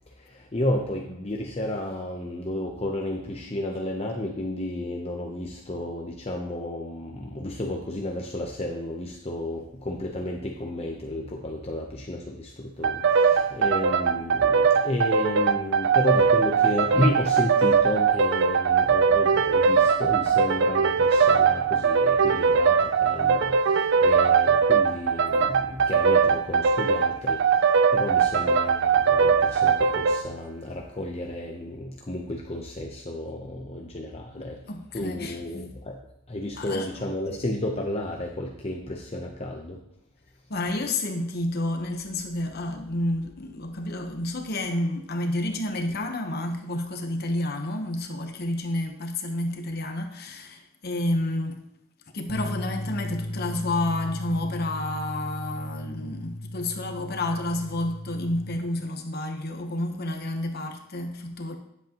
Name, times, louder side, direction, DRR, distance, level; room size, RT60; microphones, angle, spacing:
voice 1, 0.1-34.6 34.9-36.0 36.3-39.8, left 1 dB, 30° left, 0.7 m, -32 dB
sound 1, 12.8-30.3, right 6 dB, 60° right, 0.4 m, -21 dB
voice 2, 34.4-35.4 36.6-36.9 40.5-51.6 52.1-61.5, left 1 dB, 50° left, 1.0 m, -30 dB
sound 2, 52.3-58.6, left 1 dB, 45° right, 1.5 m, -36 dB
10.5 x 8.0 x 3.0 m
head